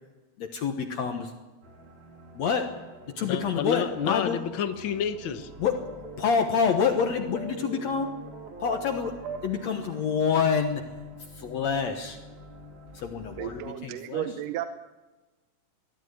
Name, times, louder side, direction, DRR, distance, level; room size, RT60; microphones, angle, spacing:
voice 1, 0.4-1.3 2.3-2.7 3.2-4.4 5.6-5.8 6.2-8.1 8.6-9.1 9.4-10.8 11.3-12.2 12.9-14.3, left 6 dB, 60° left, 5 dB, 2.2 m, -27 dB
sound 1, 1.6-13.7, left 1 dB, 25° right, 1.5 m, -48 dB
sound 2, 2.9-10.0, right 5 dB, 65° right, 3.1 m, -45 dB
voice 2, 3.2-5.5, left 8 dB, 85° left, 9 dB, 1.1 m, -30 dB
voice 3, 13.4-14.7, right 12 dB, 80° right, 9 dB, 2.4 m, -33 dB
20.5 x 14.0 x 9.6 m, 1.2 s
omnidirectional pair, 3.8 m